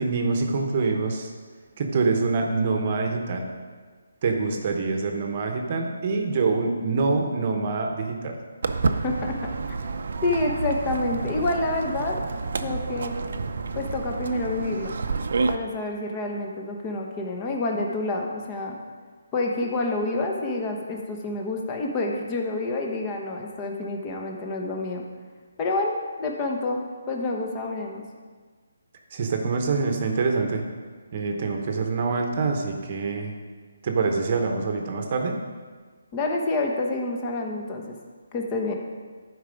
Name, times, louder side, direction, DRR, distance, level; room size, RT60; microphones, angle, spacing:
voice 1, 0.0-1.3 1.8-3.4 4.2-8.4 29.1-30.6 31.1-33.4 33.8-35.4, right 4 dB, 35° right, 3 dB, 0.9 m, -25 dB
Walk footsteps, 8.6-15.6, right 4 dB, 55° right, 0.6 m, -29 dB
voice 2, 9.0-9.4 9.7-9.8 10.2-12.2 12.6-13.1 13.7-14.9 15.5-18.8 19.3-25.0 25.6-25.9 26.2-28.0 36.1-37.9 38.3-38.7, left 2 dB, 20° left, 1 dB, 0.9 m, -28 dB
11.5 x 4.8 x 5.1 m, 1.5 s
hypercardioid pair, 170°, 0 cm